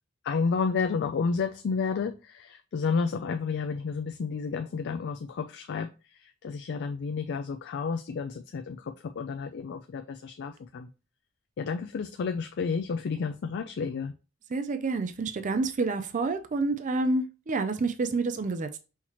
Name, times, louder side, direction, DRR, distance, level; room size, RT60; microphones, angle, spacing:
voice 1, 0.2-5.9 6.1-10.9 11.6-14.1, left 5 dB, 55° left, 0.4 m, -31 dB
voice 2, 14.5-18.8, right 3 dB, 35° right, 0.4 m, -28 dB
5.7 x 2.9 x 3.0 m
head